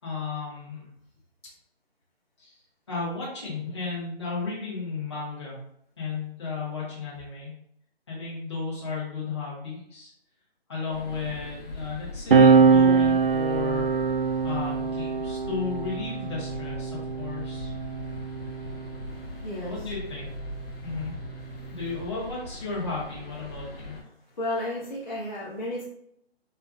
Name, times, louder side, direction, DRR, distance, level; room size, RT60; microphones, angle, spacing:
voice 1, 0.0-0.9 2.4-2.6 2.9-5.6 6.0-7.5 8.1-10.1 10.7-13.9 14.4-17.7 19.6-20.3 20.8-21.2 21.7-24.0, left 4 dB, 25° left, -7 dB, 1.2 m, -34 dB
sound 1, 10.9-24.0, left 1 dB, 65° left, 1.3 m, -40 dB
sound 2, 12.3-19.2 20.2-22.0, right 5 dB, 55° right, 0.4 m, -23 dB
voice 2, 19.1-19.9 24.4-25.8, left 1 dB, 45° left, -7 dB, 0.9 m, -33 dB
5.5 x 2.0 x 2.5 m, 0.69 s
hypercardioid pair, 175°, 32 cm